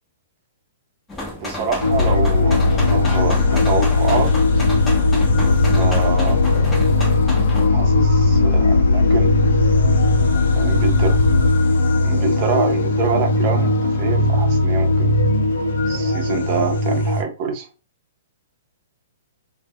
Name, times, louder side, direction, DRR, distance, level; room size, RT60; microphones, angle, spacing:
sound 1, 1.1-7.7, left 1 dB, 10° left, 0.6 m, -31 dB
voice 1, 1.4-4.6 5.8-6.4 7.7-9.3 10.6-11.2 12.0-15.1 15.9-17.7, right 5 dB, 30° right, 0.6 m, -26 dB
sound 2, 1.8-17.2, left 2 dB, 75° left, 0.5 m, -20 dB
sound 3, 1.9-11.5, left 4 dB, 85° right, 0.7 m, -19 dB
2.1 x 2.1 x 3.5 m
hypercardioid pair, 160°, 0 cm